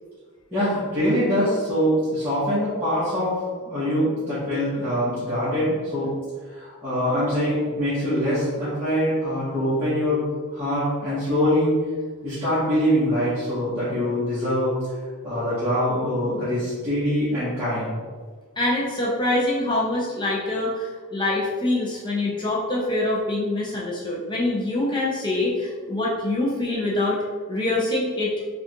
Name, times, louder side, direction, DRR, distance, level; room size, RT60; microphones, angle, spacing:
voice 1, 0.5-3.4 3.6-6.1 6.5-11.7 12.2-14.7 15.2-18.0, equal, 10° right, -14 dB, 1.0 m, -24 dB
voice 2, 18.6-27.2 27.5-28.3, left 2 dB, 20° left, -5 dB, 0.5 m, -24 dB
4.7 x 2.4 x 2.9 m, 1.5 s
head